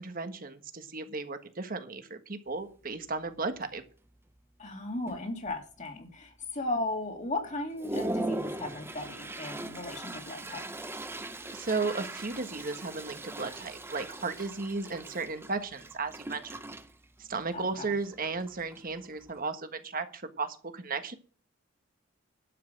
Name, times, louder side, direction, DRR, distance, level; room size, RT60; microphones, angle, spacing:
voice 1, 0.0-3.8 11.5-16.5 17.2-21.1, right 4 dB, 45° right, 8 dB, 1.5 m, -35 dB
Toilet flush, 2.5-2.6 3.1-3.3 3.6-4.2 4.7-4.8 5.1-5.8 6.3-6.4 6.9-7.0 7.4-19.4, right 1 dB, 10° right, 0.7 m, -40 dB
voice 2, 4.6-10.7 17.5-17.9, left 2 dB, 40° left, 3 dB, 2.3 m, -36 dB
12.0 x 5.7 x 7.6 m, 0.40 s
head